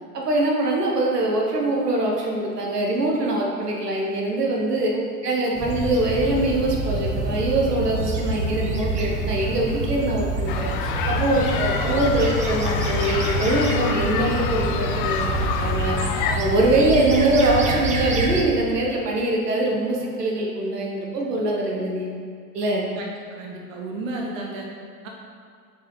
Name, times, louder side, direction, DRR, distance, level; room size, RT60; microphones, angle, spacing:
voice 1, 0.1-4.9 5.2-16.0 16.3-22.1 22.5-22.9, right 2 dB, 80° right, -2 dB, 1.2 m, -23 dB
sound 1, 5.5-18.4, right 2 dB, 15° right, 0.6 m, -27 dB
sound 2, 10.5-16.4, left 7 dB, 35° left, 0.4 m, -27 dB
voice 2, 23.0-24.7 25.0-25.1, right 2 dB, 55° right, 0 dB, 1.1 m, -33 dB
6.9 x 4.8 x 3.9 m, 2.1 s
figure-of-eight pair, 95°, 47 cm